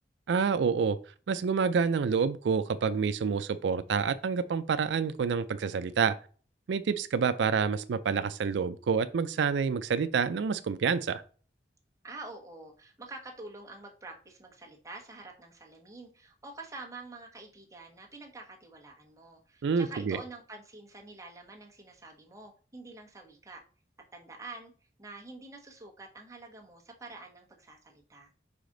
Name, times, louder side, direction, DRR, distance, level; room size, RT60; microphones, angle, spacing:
voice 1, 0.3-1.0 1.3-6.2 6.7-11.2 19.6-20.2, right 6 dB, 80° right, 0.4 m, -28 dB
voice 2, 12.0-23.6 24.1-24.7 25.0-28.3, right 3 dB, 20° right, 1.1 m, -47 dB
5.0 x 4.9 x 3.8 m
head